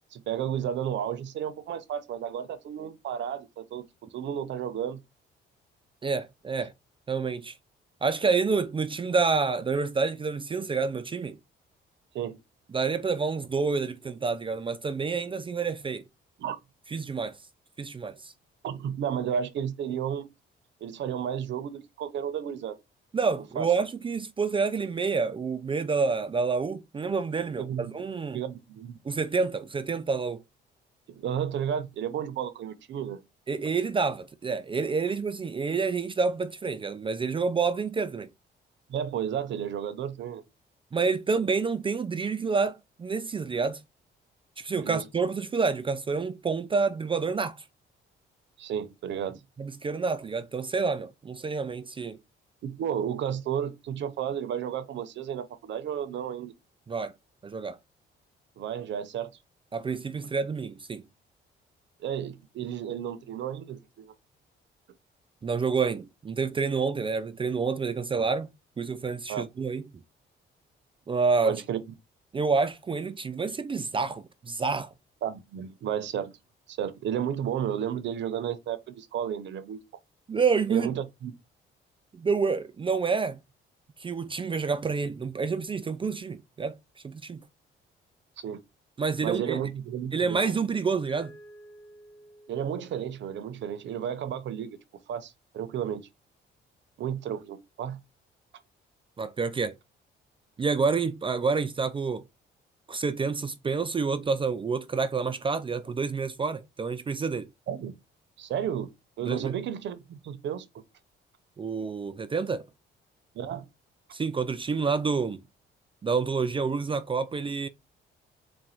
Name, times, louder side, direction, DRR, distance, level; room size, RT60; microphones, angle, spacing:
voice 1, 0.1-5.0 12.1-12.4 16.4-16.6 18.6-20.3 20.8-22.8 23.6-23.7 27.6-28.0 28.3-29.0 31.1-33.2 38.9-40.4 44.8-45.1 48.6-49.4 52.6-56.5 58.6-59.3 62.0-64.1 69.3-69.4 71.4-71.8 75.2-76.3 76.7-79.9 80.7-81.3 88.4-88.6 89.2-90.5 92.5-94.8 95.1-96.1 97.0-98.0 107.7-107.9 108.4-108.9 109.2-110.7 113.3-113.6, right 9 dB, 65° right, 0.7 m, -32 dB
voice 2, 6.0-6.7 7.1-7.6 8.0-11.4 12.7-16.0 16.9-17.3 17.8-18.3 23.1-28.4 29.0-30.4 33.5-38.3 40.9-43.8 44.6-47.6 49.6-52.2 56.9-57.1 57.4-57.8 59.7-61.0 65.4-68.5 68.8-69.8 71.1-71.6 72.3-74.9 80.3-80.9 82.1-83.4 84.0-86.7 87.0-87.4 89.0-89.6 90.1-91.3 99.2-99.8 100.6-102.2 102.9-107.5 109.2-109.5 111.6-112.7 114.1-115.4 116.0-117.7, right 5 dB, 25° right, 0.4 m, -28 dB
Mallet percussion, 91.1-94.0, equal, 75° left, 1.5 m, -52 dB
4.2 x 2.2 x 3.8 m
cardioid pair, 90°, 20 cm